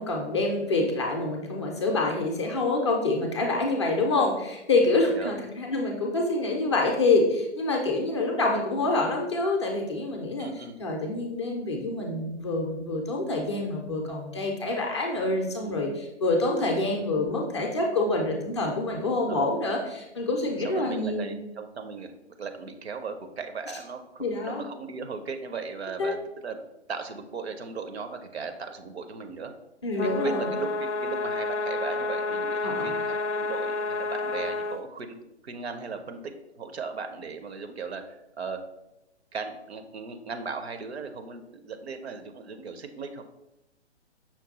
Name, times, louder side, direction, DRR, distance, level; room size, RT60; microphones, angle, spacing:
voice 1, 0.0-10.5 10.8-21.3 24.2-24.6 26.0-26.2 29.8-30.5 32.6-32.9, left 2 dB, 25° left, 0 dB, 0.4 m, -26 dB
voice 2, 10.4-10.8 19.2-19.5 20.6-22.1 22.4-26.6 26.9-29.5 30.0-35.2 35.4-38.6 39.3-43.2, right 5 dB, 65° right, 7 dB, 0.7 m, -37 dB
sound 1, 30.0-34.8, left 3 dB, 80° left, 0.5 m, -30 dB
5.8 x 2.2 x 4.0 m, 0.89 s
figure-of-eight pair, 130°, 35 cm